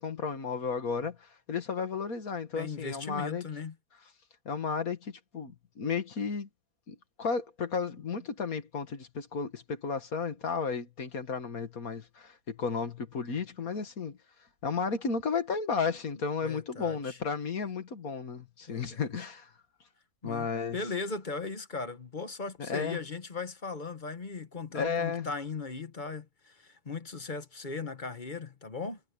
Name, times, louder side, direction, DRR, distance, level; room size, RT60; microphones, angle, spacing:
voice 1, 0.0-3.4 4.5-6.5 6.9-14.2 14.6-19.5 20.2-20.8 22.6-23.0 24.7-25.3, left 5 dB, 70° left, 2.3 m, -33 dB
voice 2, 2.5-3.7 16.4-17.2 18.7-19.1 20.2-29.0, left 4 dB, 35° left, 1.3 m, -38 dB
omnidirectional pair, 1.6 m